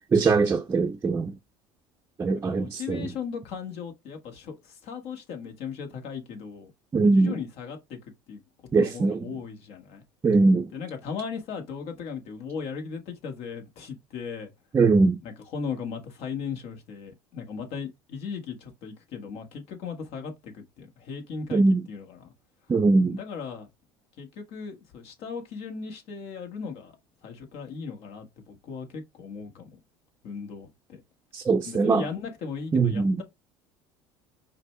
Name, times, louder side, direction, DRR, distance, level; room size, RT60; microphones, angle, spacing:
voice 1, 0.1-1.4 2.2-3.1 6.9-7.3 8.7-9.2 10.2-10.7 14.7-15.2 21.5-21.8 22.7-23.2 31.3-32.0 32.7-33.2, right 3 dB, 20° right, 0.5 m, -21 dB
voice 2, 2.5-6.7 7.0-8.0 8.3-8.4 8.7-10.0 10.7-14.5 15.2-22.3 23.1-23.7 24.2-26.9 27.2-29.7 30.2-31.0 31.6-33.2, left 6 dB, 65° left, 1.3 m, -37 dB
5.0 x 2.2 x 3.2 m
supercardioid pair, 100°, 11 cm